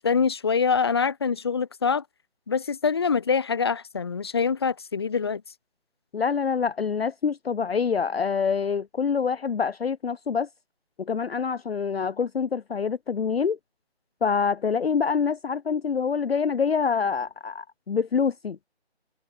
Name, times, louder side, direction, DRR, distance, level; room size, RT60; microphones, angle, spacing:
voice 1, 0.0-2.0 2.5-5.4, left 5 dB, 25° left, 1.2 m, -24 dB
voice 2, 6.1-10.5 11.0-13.6 14.2-18.6, left 6 dB, 65° left, 0.6 m, -26 dB
figure-of-eight pair, 160°, 33 cm